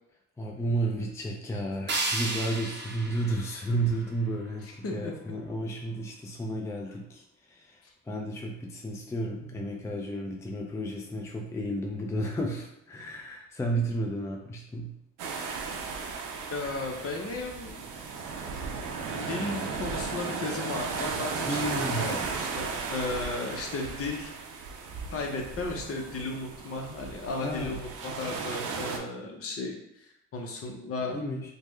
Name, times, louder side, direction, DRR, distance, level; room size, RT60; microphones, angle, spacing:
voice 1, 0.4-7.8 8.1-14.9 21.5-22.2 27.4-27.8 31.1-31.5, right 1 dB, 10° left, 0 dB, 0.4 m, -32 dB
sound 1, 1.9-4.9, right 2 dB, 35° right, 0.6 m, -34 dB
voice 2, 4.6-5.1 16.5-17.8 19.1-24.4 25.1-31.2, left 3 dB, 50° left, 2 dB, 0.7 m, -35 dB
sound 2, 15.2-29.0, right 5 dB, 85° right, 0.5 m, -35 dB
3.5 x 2.2 x 3.1 m, 0.81 s
cardioid pair, 90°, 30 cm